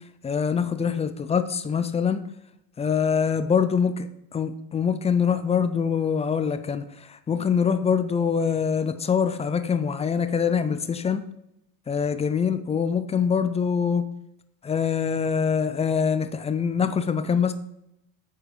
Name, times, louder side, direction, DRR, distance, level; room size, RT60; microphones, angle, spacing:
voice 1, 0.2-2.2 2.8-3.9 4.3-11.2 11.9-14.0 14.6-17.5, left 6 dB, 15° left, 10 dB, 0.3 m, -24 dB
8.6 x 4.5 x 3.3 m, 0.82 s
hypercardioid pair, 75°, 49 cm